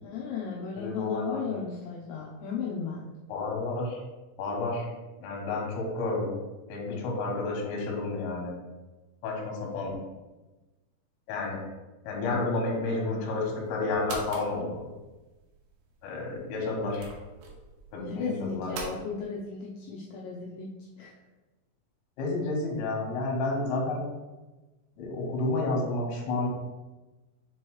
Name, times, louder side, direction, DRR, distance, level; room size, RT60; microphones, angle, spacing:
voice 1, 0.0-3.1 18.0-20.7 21.0-21.1, left 5 dB, 90° left, -4 dB, 2.4 m, -35 dB
voice 2, 0.8-1.4 3.3-4.0 4.4-4.9 5.2-6.3 6.7-8.5 9.2-9.9 11.3-11.6 12.0-14.9 16.0-17.1 17.9-19.0 22.2-24.0 25.0-26.5, left 2 dB, 70° left, -2 dB, 3.3 m, -30 dB
sound 1, 13.3-18.9, right 3 dB, 75° right, 2.5 m, -44 dB
7.2 x 3.1 x 4.6 m, 1.1 s
omnidirectional pair, 5.8 m